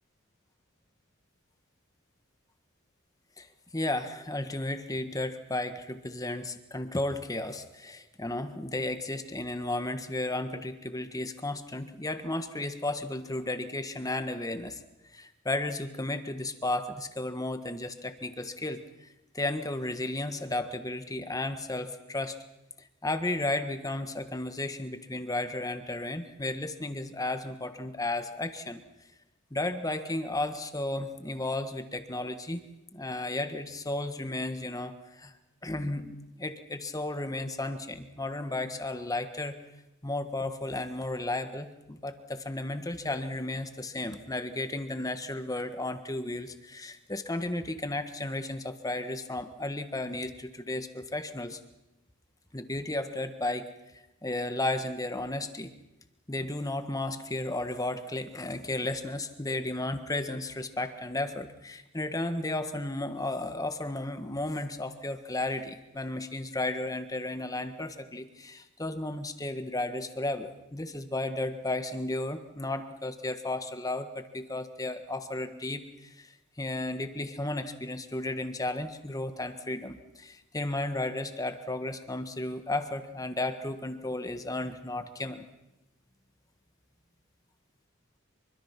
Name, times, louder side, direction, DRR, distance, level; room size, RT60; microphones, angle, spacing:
voice 1, 3.7-14.8 15.1-19.1 19.3-22.4 22.8-28.8 29.5-32.6 32.9-35.3 35.6-39.6 40.0-51.6 52.5-55.7 56.3-76.3 76.6-85.4, left 2 dB, 15° left, 9 dB, 1.5 m, -34 dB
25.5 x 24.0 x 6.0 m, 0.95 s
head